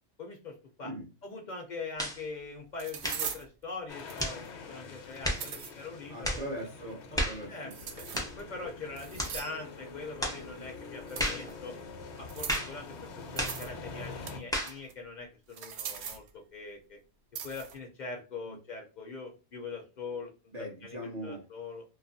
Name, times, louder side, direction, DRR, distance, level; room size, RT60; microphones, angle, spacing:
voice 1, 0.2-0.9 1.2-6.4 7.1-7.2 7.5-7.7 8.4-11.7 12.2-17.0 17.4-20.3 20.8-21.0 21.2-21.8, left 4 dB, 55° left, 2 dB, 0.6 m, -42 dB
sound 1, 1.9-2.0 2.8-3.5 4.1-4.5 5.1-5.7 7.7-8.4 9.0-9.6 11.1-11.5 12.3-12.7 13.4-13.7 14.0-14.9 15.5-16.3 17.3-17.8, right 7 dB, 75° right, 0.8 m, -40 dB
sound 2, 2.0-2.2 3.0-3.3 4.2-4.4 5.2-5.5 6.2-6.5 7.1-7.4 8.1-8.4 9.2-9.4 10.2-10.4 11.2-11.5 12.5-12.8 13.4-13.6 14.5-14.8, equal, 5° left, 0.3 m, -32 dB
sound 3, 3.9-14.4, left 4 dB, 80° left, 0.9 m, -45 dB
voice 2, 6.1-7.7 18.5-18.6 20.5-21.5, right 1 dB, 45° right, -2 dB, 0.6 m, -40 dB
2.8 x 2.3 x 2.5 m, 0.32 s
omnidirectional pair, 1.2 m